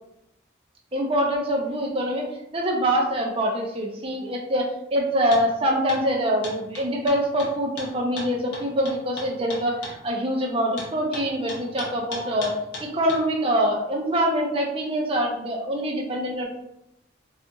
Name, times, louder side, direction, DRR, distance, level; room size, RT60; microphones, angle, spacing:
voice 1, 0.9-2.3 2.5-12.5 12.8-16.6, equal, 30° right, -1 dB, 0.5 m, -24 dB
sound 1, 5.3-5.5 5.9-6.0 6.4-10.0 10.8-13.2, left 2 dB, 55° left, 0.7 m, -36 dB
2.4 x 2.4 x 2.7 m, 0.85 s
head